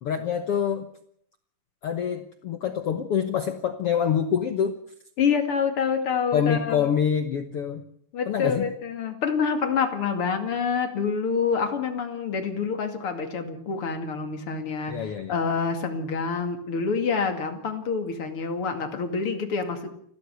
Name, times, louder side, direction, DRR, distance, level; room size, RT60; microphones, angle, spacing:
voice 1, 0.0-0.9 1.8-4.8 6.3-7.8 8.3-8.7 14.9-15.4, left 8 dB, 85° left, 8 dB, 1.2 m, -26 dB
voice 2, 5.2-6.9 8.1-19.9, left 5 dB, 40° left, 7 dB, 2.8 m, -27 dB
29.0 x 13.0 x 8.2 m, 0.67 s
omnidirectional pair, 4.5 m